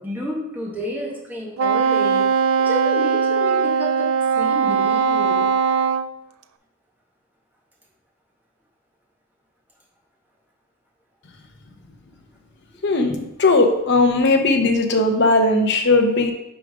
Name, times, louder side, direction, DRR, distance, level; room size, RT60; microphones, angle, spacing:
voice 1, 0.0-2.3 2.6-5.5, equal, 10° right, -3 dB, 1.5 m, -30 dB
Wind instrument woodwind instrument, 1.6-6.1, right 6 dB, 80° right, 0.4 m, -20 dB
voice 2, 12.8-16.3, left 2 dB, 60° left, 5 dB, 0.8 m, -18 dB
5.0 x 4.9 x 4.9 m, 0.88 s
head